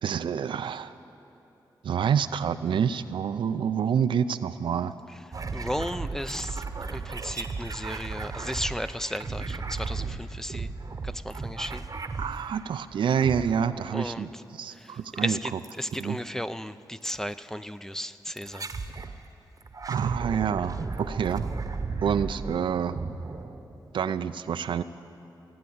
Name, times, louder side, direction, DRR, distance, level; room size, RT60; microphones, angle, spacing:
voice 1, 0.0-0.9 1.8-4.9 12.2-15.6 16.0-16.2 19.9-21.5 22.0-23.0 23.9-24.8, right 7 dB, 80° right, 12 dB, 0.5 m, -27 dB
sound 1, 5.3-12.8 13.2-13.9 15.6-16.1 17.1-17.2 18.4-19.2 19.6-24.0, right 4 dB, 45° right, 0.9 m, -35 dB
voice 2, 5.5-10.7 11.0-11.9 13.9-14.4 14.7-15.5 15.8-18.7, equal, 5° left, 12 dB, 0.5 m, -35 dB
16.0 x 9.6 x 8.6 m, 3.0 s
cardioid pair, 65°, 8 cm